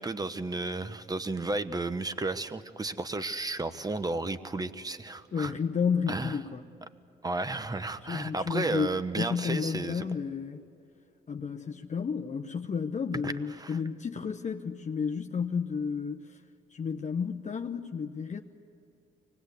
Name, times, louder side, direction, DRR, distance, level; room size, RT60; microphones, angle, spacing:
voice 1, 0.0-5.5 6.1-6.4 7.2-10.1 13.2-13.3 13.6-13.8, right 2 dB, 20° right, 11 dB, 1.1 m, -33 dB
voice 2, 5.3-6.6 8.0-8.9 9.2-10.6 11.3-16.4 16.7-18.4, left 6 dB, 35° left, 4 dB, 0.9 m, -32 dB
25.0 x 19.0 x 8.3 m, 2.8 s
cardioid pair, 90°, 20 cm